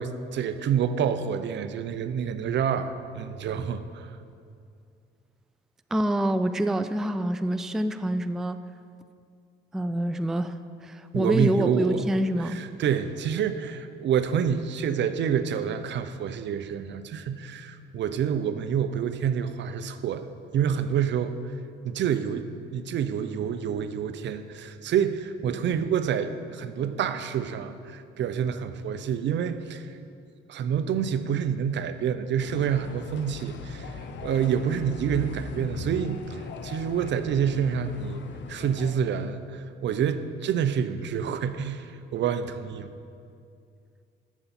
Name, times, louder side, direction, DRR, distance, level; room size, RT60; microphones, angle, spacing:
voice 1, 0.0-4.1 11.1-12.0 12.5-21.4 21.8-29.9 30.5-38.2 38.5-42.9, right 8 dB, 65° right, 11 dB, 0.6 m, -28 dB
voice 2, 5.9-8.6 9.7-12.6, right 1 dB, ahead, 11 dB, 0.3 m, -26 dB
sound 1, 32.4-38.9, left 5 dB, 65° left, 0.7 m, -40 dB
13.5 x 7.1 x 4.2 m, 2.4 s
cardioid pair, 90°, 20 cm